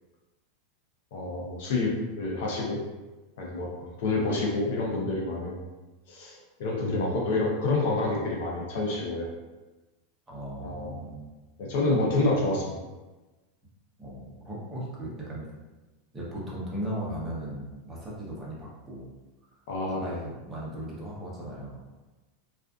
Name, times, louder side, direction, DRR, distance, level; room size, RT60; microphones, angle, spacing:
voice 1, 1.1-2.8 3.4-5.6 6.1-9.3 10.6-11.0 11.6-12.8 19.7-20.1, left 2 dB, 70° left, -2 dB, 0.6 m, -28 dB
voice 2, 10.3-11.3 14.0-15.5 16.1-19.1 19.9-21.8, right 1 dB, 15° right, -6 dB, 0.7 m, -37 dB
2.4 x 2.4 x 2.3 m, 1.2 s
supercardioid pair, 145°, 0 cm